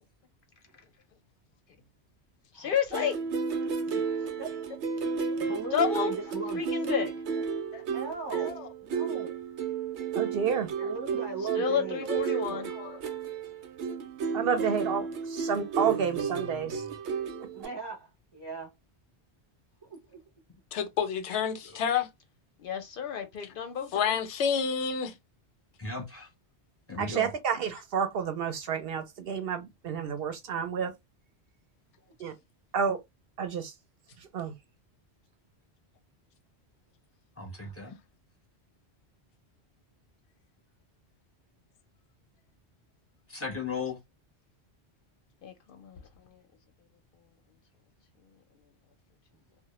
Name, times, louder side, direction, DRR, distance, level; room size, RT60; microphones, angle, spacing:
voice 1, 2.5-3.2 5.7-6.1 6.5-7.1 11.5-12.7 22.6-24.2 45.4-46.0, left 8 dB, 60° left, 0.6 m, -31 dB
sound 1, 2.9-17.7, right 6 dB, 90° right, 0.9 m, -32 dB
voice 2, 5.4-6.7 7.9-9.4 10.8-12.0 12.4-12.7 17.5-18.7 19.8-20.2 37.5-37.7, right 3 dB, 35° right, 0.5 m, -39 dB
voice 3, 8.3-8.7 10.8-10.9 12.1-12.4 12.7-13.0 20.7-22.1 23.9-25.1, left 7 dB, 90° left, 0.9 m, -30 dB
voice 4, 10.2-10.7 14.3-16.8 27.0-30.9 32.2-32.3 32.7-33.0 33.4-33.7 34.3-34.5, right 7 dB, 65° right, 0.7 m, -30 dB
voice 5, 15.9-17.0 20.5-20.6 25.8-26.3 26.9-27.3 37.4-38.0 43.3-44.0, left 4 dB, 15° left, 0.7 m, -38 dB
2.1 x 2.1 x 2.9 m
omnidirectional pair, 1.1 m